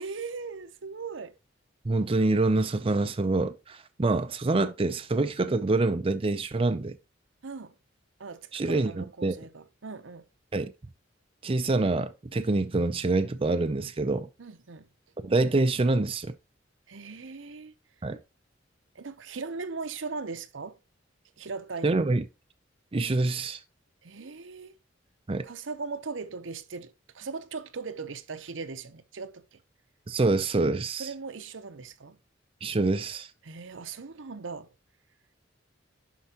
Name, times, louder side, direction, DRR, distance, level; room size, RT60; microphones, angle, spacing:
voice 1, 0.0-1.4 7.4-7.7 8.2-10.3 14.4-14.9 16.9-17.7 18.0-18.1 18.9-20.8 21.4-22.1 24.0-24.7 25.4-29.6 31.0-32.2 33.4-34.7, right 4 dB, 80° right, 0.8 m, -39 dB
voice 2, 1.8-7.0 8.5-9.4 10.5-10.7 11.4-14.3 15.2-16.3 18.0-18.2 21.8-22.2 22.9-23.6 25.3-25.5 30.1-31.1 32.6-33.3, right 2 dB, 30° right, 0.5 m, -26 dB
11.0 x 4.6 x 2.9 m
head